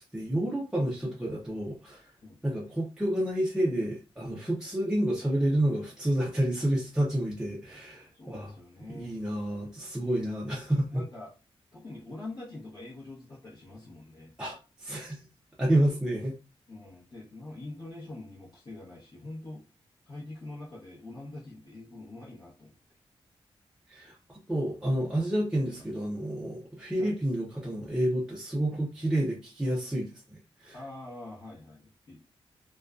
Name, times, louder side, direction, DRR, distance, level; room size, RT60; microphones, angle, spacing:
voice 1, 0.1-2.1 2.4-8.5 8.9-11.0 14.4-15.2 15.6-16.3 23.9-30.1 30.6-30.8, right 1 dB, 5° right, 0.5 m, -29 dB
voice 2, 8.1-9.2 10.9-11.3 11.7-14.3 16.7-19.6 20.0-22.8 27.0-27.2 30.7-32.2, left 2 dB, 45° left, 0.8 m, -44 dB
2.4 x 2.2 x 2.3 m
wide cardioid pair, 160°, 10 cm